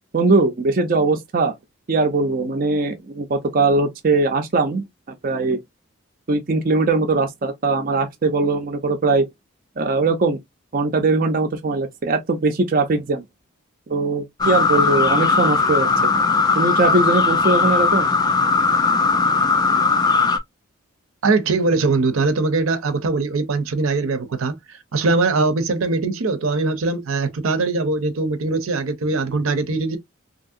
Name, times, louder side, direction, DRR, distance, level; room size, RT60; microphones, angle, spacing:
voice 1, 0.1-1.5 1.9-4.9 5.2-5.6 6.3-9.2 9.8-10.4 10.7-13.2 13.9-16.1 16.6-18.2, right 3 dB, 40° right, 0.5 m, -20 dB
sound 1, 14.4-20.4, left 4 dB, 20° left, 0.3 m, -18 dB
voice 2, 21.2-24.5 24.9-30.0, right 3 dB, 80° right, 0.6 m, -21 dB
2.9 x 2.7 x 2.4 m
head